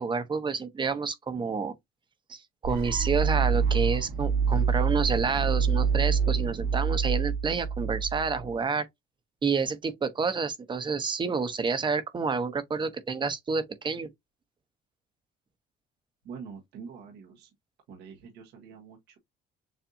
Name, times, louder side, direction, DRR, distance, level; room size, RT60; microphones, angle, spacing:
voice 1, 0.0-1.7 2.3-8.9 9.4-14.1, right 5 dB, 30° right, 0.9 m, -29 dB
sound 1, 2.6-8.6, right 6 dB, 65° right, 1.3 m, -26 dB
voice 2, 16.2-17.5 17.9-19.2, right 6 dB, 80° right, 1.3 m, -45 dB
7.0 x 2.6 x 2.7 m
cardioid pair, 110°, 17 cm